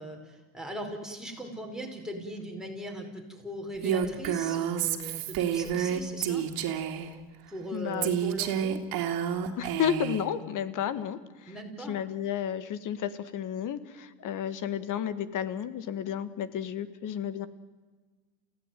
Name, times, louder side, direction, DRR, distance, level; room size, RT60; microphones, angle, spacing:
voice 1, 0.0-6.4 7.5-8.8 11.5-12.0, right 1 dB, ahead, 1 dB, 5.1 m, -39 dB
Female speech woman speaking, 3.8-7.1 8.0-10.2, right 9 dB, 50° right, 2.8 m, -29 dB
voice 2, 7.7-8.2 9.6-11.5 11.8-17.5, left 9 dB, 45° left, 14 dB, 1.8 m, -32 dB
28.5 x 16.5 x 9.3 m, 1.4 s
supercardioid pair, 105°, 45 cm